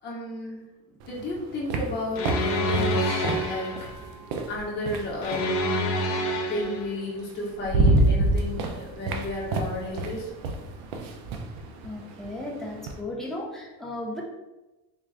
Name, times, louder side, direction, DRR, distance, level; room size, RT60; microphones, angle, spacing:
voice 1, 0.0-0.6 1.0-3.9 4.5-6.0 6.5-10.3, left 1 dB, 30° left, -6 dB, 1.0 m, -33 dB
sound 1, 1.0-5.6 6.8-6.9 7.3-13.0, right 2 dB, 75° right, 0.6 m, -28 dB
sound 2, 2.2-3.9 5.2-6.9, left 1 dB, 50° left, 0.5 m, -27 dB
sound 3, 3.0-6.8 7.8-8.0, right 3 dB, 50° right, 0.9 m, -45 dB
voice 2, 11.8-14.2, left 1 dB, ahead, -3 dB, 0.4 m, -35 dB
3.6 x 2.4 x 3.2 m, 1.1 s
cardioid pair, 160°, 37 cm